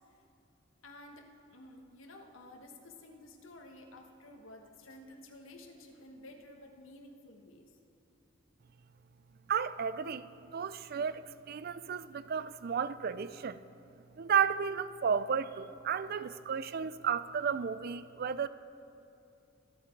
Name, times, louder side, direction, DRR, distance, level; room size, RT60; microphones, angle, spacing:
voice 1, 0.8-7.8, left 1 dB, 80° left, 2 dB, 1.4 m, -52 dB
voice 2, 9.5-13.6 14.2-18.5, right 7 dB, 50° right, 15 dB, 0.4 m, -33 dB
24.5 x 8.4 x 4.6 m, 2.8 s
head